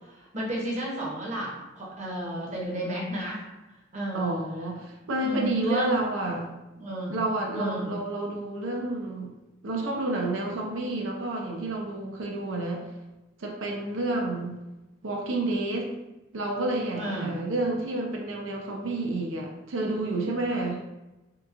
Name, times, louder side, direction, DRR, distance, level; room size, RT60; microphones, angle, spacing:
voice 1, 0.0-3.4 3.7-4.3 5.2-6.0 6.8-7.1 7.5-7.9 16.9-17.3, right 1 dB, 35° right, -3 dB, 0.8 m, -32 dB
voice 2, 4.1-6.5 7.1-9.3 9.6-12.8 13.4-14.6 15.0-15.9 16.3-20.8, right 2 dB, 90° right, 0 dB, 0.6 m, -30 dB
3.6 x 2.8 x 2.4 m, 1.0 s
head